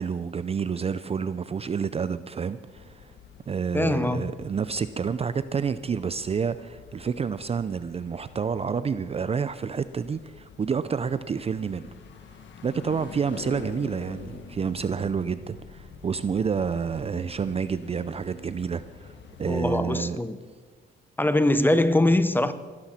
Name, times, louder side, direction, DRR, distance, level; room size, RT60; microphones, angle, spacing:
voice 1, 0.0-3.1 3.5-11.9 12.6-19.1 19.4-20.2, right 6 dB, 30° right, 0.5 m, -29 dB
sound 1, 2.7-19.7, left 6 dB, 65° left, 1.4 m, -46 dB
voice 2, 3.7-4.3 19.5-20.4 21.2-22.5, left 1 dB, 10° left, 0.7 m, -22 dB
19.5 x 12.0 x 4.3 m
cardioid pair, 90°, 20 cm